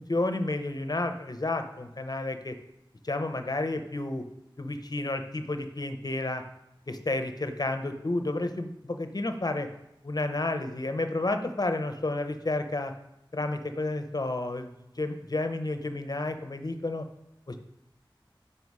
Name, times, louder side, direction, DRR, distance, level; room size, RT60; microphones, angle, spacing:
voice 1, 0.1-2.5 3.0-4.2 4.6-6.4 6.9-9.7 10.0-12.9 13.3-14.7 15.0-17.0, left 2 dB, 50° left, 7 dB, 0.7 m, -31 dB
5.6 x 5.4 x 4.7 m, 0.89 s
wide cardioid pair, 50°, 9 cm